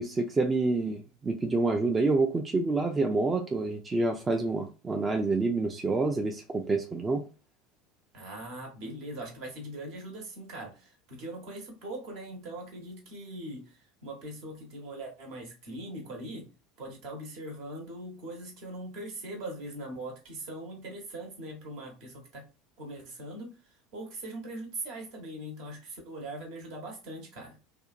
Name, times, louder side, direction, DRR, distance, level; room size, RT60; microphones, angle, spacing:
voice 1, 0.0-7.2, right 3 dB, 20° right, 0.4 m, -27 dB
voice 2, 8.1-16.4 16.8-22.5 22.8-23.5 23.9-27.6, right 1 dB, 60° right, 1.1 m, -41 dB
2.6 x 2.2 x 2.4 m
hypercardioid pair, 80°, 0 cm